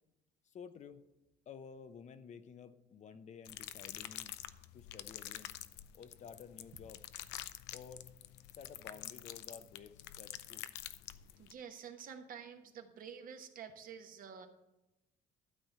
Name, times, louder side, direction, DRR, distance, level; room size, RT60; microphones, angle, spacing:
voice 1, 0.4-1.0 1.5-4.4 4.7-5.5 5.9-7.1 7.7-8.1 8.5-10.7, left 6 dB, 45° left, 11 dB, 0.7 m, -52 dB
sound 1, 3.5-11.5, left 14 dB, 90° left, 0.5 m, -47 dB
voice 2, 11.4-14.5, right 7 dB, 55° right, 6 dB, 1.2 m, -49 dB
12.5 x 4.3 x 8.0 m, 0.98 s
cardioid pair, 110°, 17 cm